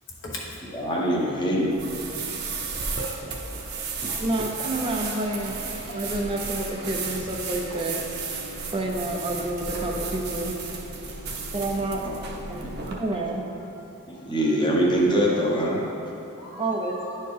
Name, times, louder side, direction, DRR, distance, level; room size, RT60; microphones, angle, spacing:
voice 1, 0.7-1.7 4.0-4.2 12.0-12.7 14.1-15.8, equal, 20° left, -3 dB, 0.8 m, -24 dB
sound 1, 1.7-12.9, right 4 dB, 50° right, 0.8 m, -34 dB
voice 2, 2.2-3.4 4.0-4.2 14.2-14.3 16.4-17.1, left 1 dB, 60° left, -4 dB, 1.3 m, -41 dB
voice 3, 4.2-8.0 8.7-10.5 11.5-12.0 12.5-12.6 12.9-13.4 16.6-17.0, right 2 dB, 25° right, 1 dB, 0.4 m, -29 dB
sound 2, 5.2-14.9, equal, 85° right, 0.8 m, -45 dB
10.0 x 4.2 x 3.3 m, 2.9 s
head